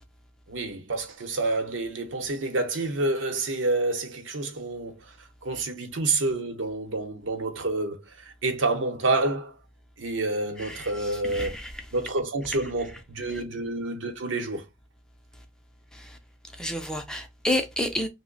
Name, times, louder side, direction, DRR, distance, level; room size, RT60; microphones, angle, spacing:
voice 1, 0.5-5.1 5.4-9.5 10.0-11.5 11.9-14.6, right 2 dB, 90° right, 0.8 m, -28 dB
voice 2, 10.6-11.8 13.3-13.4 15.9-16.2 16.6-18.1, left 1 dB, 5° left, 0.4 m, -30 dB
2.9 x 2.1 x 3.8 m
head